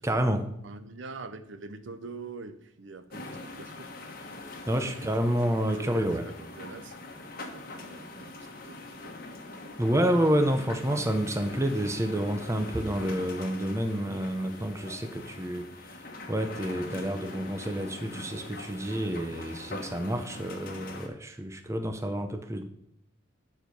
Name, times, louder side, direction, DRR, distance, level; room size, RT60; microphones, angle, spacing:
voice 1, 0.0-0.5 4.7-6.2 9.8-16.0 16.3-22.6, equal, 15° right, 7 dB, 0.6 m, -29 dB
voice 2, 0.6-3.9 4.9-7.2 7.5-9.3, right 3 dB, 70° right, 10 dB, 0.7 m, -45 dB
sound 1, 3.1-21.1, left 2 dB, 45° left, 1.2 m, -43 dB
11.5 x 4.7 x 5.2 m, 0.76 s
head